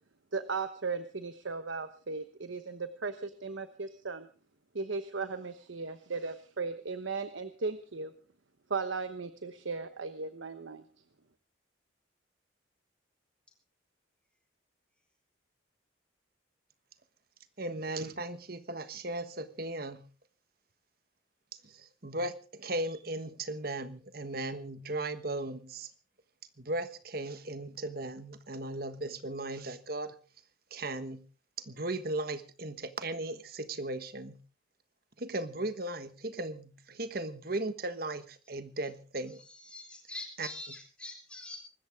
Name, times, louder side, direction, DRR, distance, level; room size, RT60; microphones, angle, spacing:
voice 1, 0.3-4.3 4.7-8.1 8.7-10.8, right 4 dB, 80° right, 11 dB, 1.0 m, -36 dB
voice 2, 17.6-20.1 21.6-25.9 26.6-30.2 30.7-31.2 31.6-34.4 35.2-39.4 40.4-40.8, right 2 dB, 50° right, 12 dB, 1.3 m, -37 dB
voice 3, 39.7-41.6, left 2 dB, 5° left, 2 dB, 4.2 m, -43 dB
24.5 x 13.5 x 3.6 m, 0.37 s
head